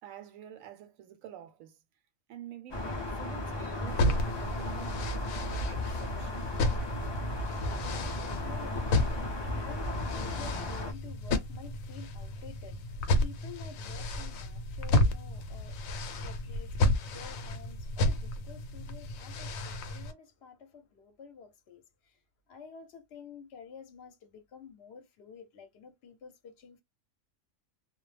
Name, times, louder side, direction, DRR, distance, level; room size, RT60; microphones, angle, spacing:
voice 1, 0.0-1.8 2.3-6.6, right 10 dB, 85° right, 1.0 m, -48 dB
sound 1, 2.7-10.9, left 1 dB, 40° left, 0.3 m, -35 dB
sound 2, 3.9-20.1, left 1 dB, 80° left, 1.0 m, -32 dB
voice 2, 7.8-22.2 22.5-26.8, left 6 dB, 60° left, 0.9 m, -50 dB
2.3 x 2.0 x 3.1 m
omnidirectional pair, 1.4 m